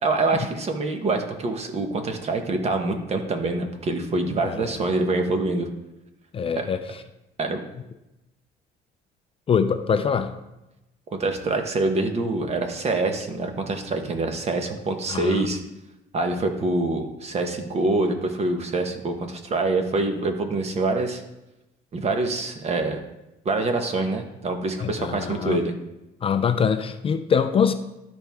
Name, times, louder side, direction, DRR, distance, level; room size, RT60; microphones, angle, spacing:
voice 1, 0.0-5.7 6.6-6.7 7.4-7.6 11.1-15.6 16.1-21.2 21.9-23.0 23.4-25.7, right 2 dB, 40° right, 5 dB, 1.1 m, -25 dB
voice 2, 6.3-6.8 9.5-10.3 15.1-15.4 24.8-25.6 26.2-27.7, left 6 dB, 35° left, 9 dB, 0.5 m, -23 dB
12.5 x 4.4 x 3.5 m, 0.95 s
cardioid pair, 110°, 17 cm